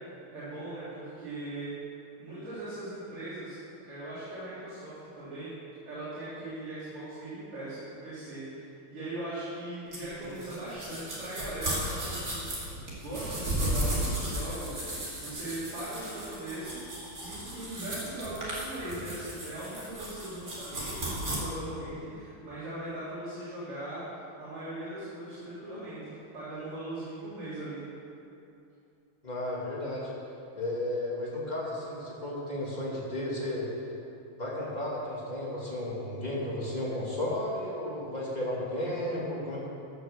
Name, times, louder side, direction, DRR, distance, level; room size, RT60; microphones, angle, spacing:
voice 1, 0.3-1.7 2.2-3.6 3.8-5.5 5.9-8.6 8.9-12.7 13.0-16.8 17.2-27.8, right 1 dB, 90° right, -13 dB, 4.4 m, -39 dB
sound 1, 9.9-21.4, right 1 dB, 40° right, 3.0 m, -35 dB
voice 2, 29.2-30.1 30.5-33.7 34.4-39.6, left 1 dB, 20° left, -5 dB, 2.5 m, -33 dB
15.0 x 6.4 x 6.6 m, 2.6 s
omnidirectional pair, 2.3 m